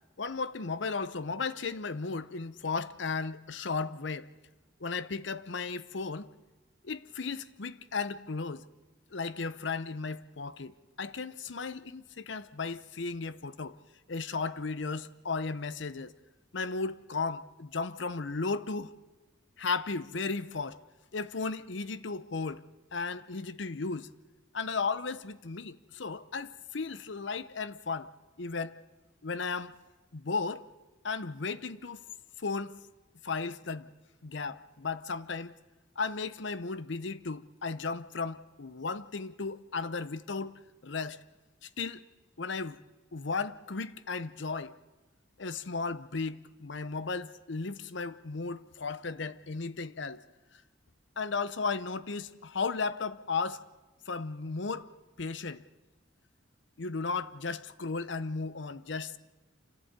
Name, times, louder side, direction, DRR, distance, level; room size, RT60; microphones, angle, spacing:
voice 1, 0.2-4.3 4.8-6.3 6.8-8.6 9.1-13.8 14.1-16.1 16.5-18.9 19.6-20.8 21.1-22.6 22.9-24.1 24.5-28.1 28.4-28.7 29.2-29.7 30.1-30.7 31.0-32.0 32.4-32.8 33.2-33.9 34.2-35.5 36.0-41.2 41.6-42.0 42.4-42.8 43.1-44.8 45.4-50.2 51.2-53.6 54.1-54.9 55.2-55.6 56.8-59.2, left 4 dB, 65° left, 0.8 m, -35 dB
26.5 x 15.0 x 8.8 m
head